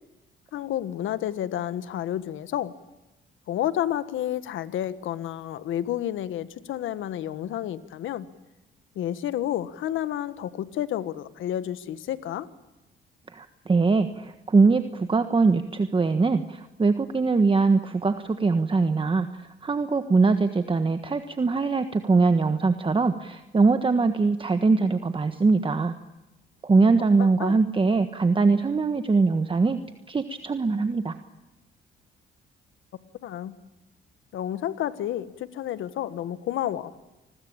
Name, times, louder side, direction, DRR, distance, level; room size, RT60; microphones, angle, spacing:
voice 1, 0.5-2.7 3.5-8.3 8.9-12.5 27.2-27.6 33.2-33.6 34.3-36.9, left 11 dB, 80° left, 14 dB, 1.5 m, -30 dB
voice 2, 13.3-25.9 26.6-29.8 30.1-31.1, right 4 dB, 25° right, 9 dB, 1.4 m, -22 dB
28.5 x 21.0 x 8.9 m, 1.0 s
cardioid pair, 90°, 20 cm